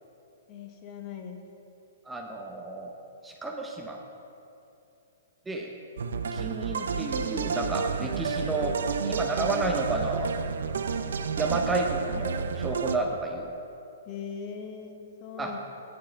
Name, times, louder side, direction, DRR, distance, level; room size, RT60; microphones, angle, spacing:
voice 1, 0.5-1.4 14.1-15.6, left 6 dB, 30° left, 4 dB, 0.9 m, -40 dB
voice 2, 2.1-2.9 3.2-4.0 5.5-5.7 6.3-10.3 11.4-13.5 15.4-15.5, right 2 dB, 10° right, 1 dB, 0.7 m, -31 dB
sound 1, 6.0-13.0, right 6 dB, 80° right, 0.5 m, -30 dB
9.5 x 7.6 x 5.7 m, 2.7 s
hypercardioid pair, 155°, 0 cm